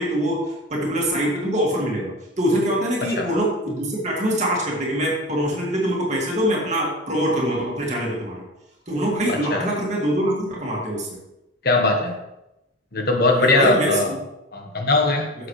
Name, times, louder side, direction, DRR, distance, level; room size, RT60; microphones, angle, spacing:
voice 1, 0.0-8.4 8.9-11.2 13.4-14.2, equal, 40° right, -3 dB, 2.4 m, -24 dB
voice 2, 9.3-9.8 11.6-12.1 12.9-14.1 14.5-15.3, left 2 dB, 55° left, 2 dB, 1.4 m, -20 dB
10.5 x 7.2 x 3.3 m, 0.92 s
head